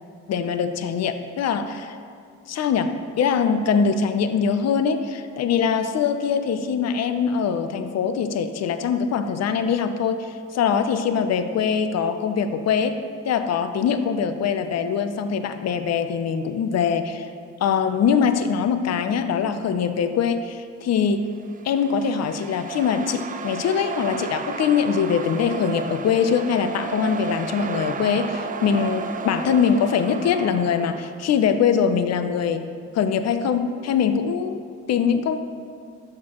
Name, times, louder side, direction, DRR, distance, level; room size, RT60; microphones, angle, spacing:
voice 1, 0.3-2.0 2.5-13.0 13.3-17.3 17.6-21.3 21.6-32.7 32.9-34.6 34.9-35.4, left 6 dB, 60° left, 9 dB, 0.6 m, -23 dB
sound 1, 21.4-31.3, right 5 dB, 30° right, 0.4 m, -33 dB
12.5 x 6.6 x 3.0 m, 2.2 s
cardioid pair, 90°, 30 cm